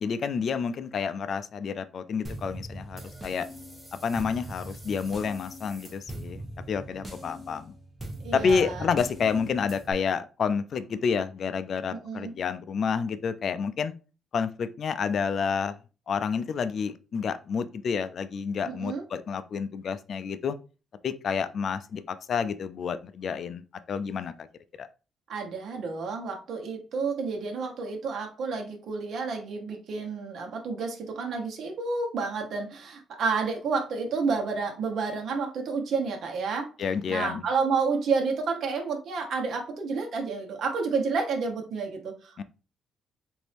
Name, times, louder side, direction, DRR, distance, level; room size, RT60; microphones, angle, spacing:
voice 1, 0.0-3.5 4.0-6.4 6.7-7.7 8.3-13.9 14.3-15.8 16.1-20.6 21.0-24.3 24.8-24.9 36.8-37.4 42.4-42.5, left 6 dB, 55° left, 11 dB, 0.3 m, -29 dB
sound 1, 2.2-9.9, right 1 dB, 10° right, 1.1 m, -41 dB
voice 2, 8.2-8.9 11.9-12.3 18.6-19.0 25.3-36.7 37.1-42.4, right 4 dB, 65° right, 2 dB, 1.0 m, -30 dB
4.0 x 2.6 x 3.3 m, 0.34 s
cardioid pair, 90°, 0 cm